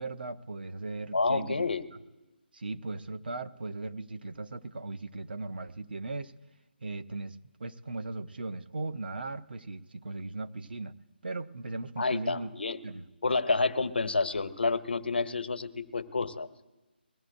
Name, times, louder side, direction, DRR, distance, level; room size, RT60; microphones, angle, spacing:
voice 1, 0.0-1.6 2.5-6.3 6.8-10.9 11.2-12.5 12.8-13.1, right 3 dB, 60° right, 9 dB, 0.7 m, -38 dB
voice 2, 1.1-1.8 12.0-12.8 13.2-16.5, left 3 dB, 70° left, 11 dB, 1.0 m, -29 dB
22.0 x 16.0 x 2.6 m, 1.1 s
figure-of-eight pair, 150°, 6 cm